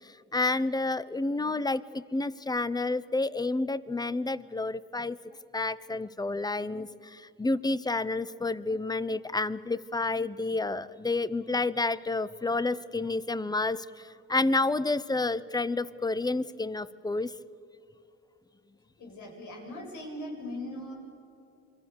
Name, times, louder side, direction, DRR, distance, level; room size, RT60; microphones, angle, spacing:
voice 1, 0.3-5.2 5.5-13.8 14.3-17.3, left 2 dB, 15° left, 18 dB, 0.8 m, -29 dB
voice 2, 19.0-20.9, left 1 dB, 75° left, 1 dB, 7.3 m, -39 dB
28.0 x 23.0 x 7.0 m, 2.7 s
cardioid pair, 90°, 30 cm